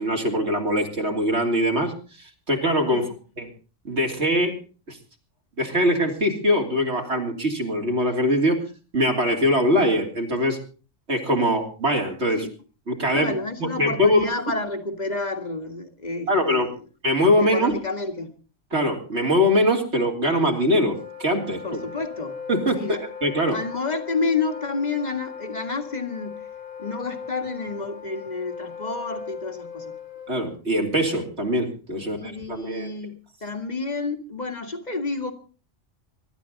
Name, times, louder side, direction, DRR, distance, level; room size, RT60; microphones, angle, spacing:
voice 1, 0.0-3.0 3.4-3.5 3.9-4.5 4.9-5.0 5.6-8.6 8.9-10.6 11.1-12.5 12.9-13.3 13.6-14.3 16.3-16.7 17.0-17.7 18.7-21.8 22.5-23.6 30.3-32.9, equal, 60° right, 2 dB, 3.6 m, -22 dB
voice 2, 13.1-16.7 17.4-18.3 21.6-22.4 22.7-23.0 23.5-26.4 26.8-29.9 32.2-35.3, left 3 dB, 35° left, 6 dB, 2.1 m, -30 dB
Wind instrument woodwind instrument, 20.6-30.6, left 6 dB, 85° left, 3.1 m, -38 dB
24.0 x 12.0 x 4.0 m, 0.36 s
omnidirectional pair, 1.3 m